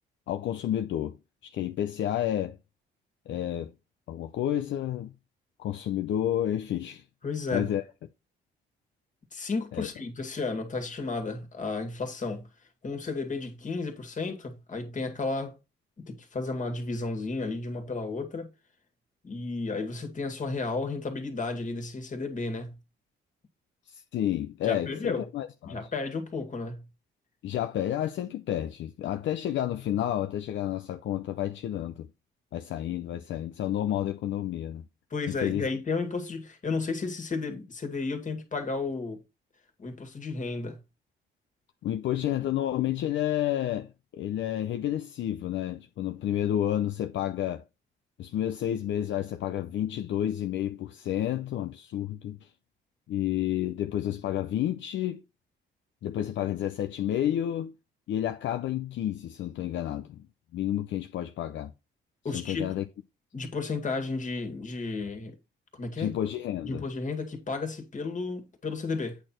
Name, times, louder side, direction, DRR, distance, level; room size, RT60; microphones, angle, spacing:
voice 1, 0.3-1.2 1.4-2.6 3.3-3.7 4.1-5.1 5.6-7.0 7.5-7.8 9.7-9.9 24.1-25.8 27.4-32.1 32.5-34.8 35.3-35.7 41.8-47.6 48.2-52.5 53.1-55.2 56.0-57.7 58.1-60.2 60.5-61.7 62.3-62.8 66.0-66.8, left 11 dB, 70° left, 0.6 m, -30 dB
voice 2, 7.2-7.7 9.3-12.5 12.8-15.6 16.0-18.5 19.2-22.8 24.6-25.3 25.7-26.8 35.1-39.2 39.8-40.8 62.2-62.8 63.3-65.3 65.8-66.1 66.6-69.2, left 3 dB, 40° left, 2.2 m, -33 dB
8.6 x 4.5 x 4.4 m
cardioid pair, 90°, 20 cm